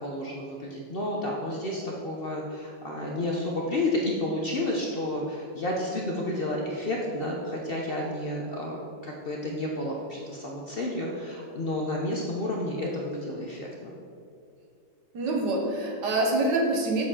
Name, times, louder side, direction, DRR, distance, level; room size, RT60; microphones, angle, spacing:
voice 1, 0.0-13.9, left 1 dB, 65° left, -2 dB, 0.5 m, -31 dB
voice 2, 15.1-17.0, right 2 dB, 65° right, 0 dB, 1.8 m, -25 dB
7.4 x 4.9 x 5.5 m, 2.4 s
omnidirectional pair, 2.1 m